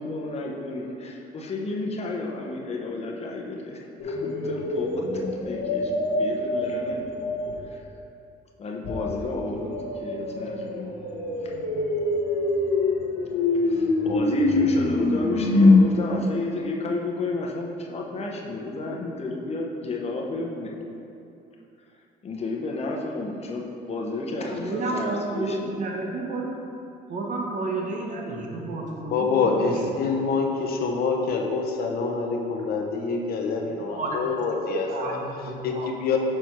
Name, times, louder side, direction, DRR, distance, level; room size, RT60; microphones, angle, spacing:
voice 1, 0.0-5.0 5.3-5.9 6.2-7.2 7.6-7.8 8.6-10.9 11.4-11.5 13.6-20.7 22.2-25.7, left 2 dB, 40° left, -1 dB, 0.9 m, -32 dB
sound 1, 4.0-7.7 8.8-15.8, left 2 dB, 85° left, 1.1 m, -24 dB
voice 2, 24.5-26.5 27.1-29.1 29.4-29.7 33.8-34.2 34.9-35.9, right 2 dB, 50° right, 0 dB, 1.1 m, -31 dB
voice 3, 29.0-35.2 35.6-36.2, left 4 dB, 65° left, 2 dB, 0.8 m, -26 dB
6.3 x 4.4 x 4.6 m, 2.7 s
cardioid pair, 110°, 17 cm